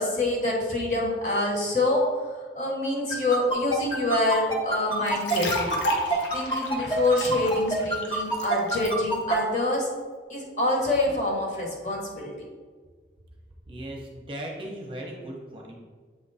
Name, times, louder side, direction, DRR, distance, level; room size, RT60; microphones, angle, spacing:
voice 1, 0.0-5.8 6.3-9.9 10.3-12.3, left 2 dB, 40° left, -2 dB, 1.3 m, -26 dB
sound 1, 3.1-9.4, right 2 dB, 25° left, 0.9 m, -26 dB
sound 2, 5.1-8.9, left 1 dB, 90° left, 1.0 m, -32 dB
voice 2, 13.7-15.8, right 1 dB, 30° right, -1 dB, 0.8 m, -37 dB
7.9 x 3.2 x 4.1 m, 1.5 s
head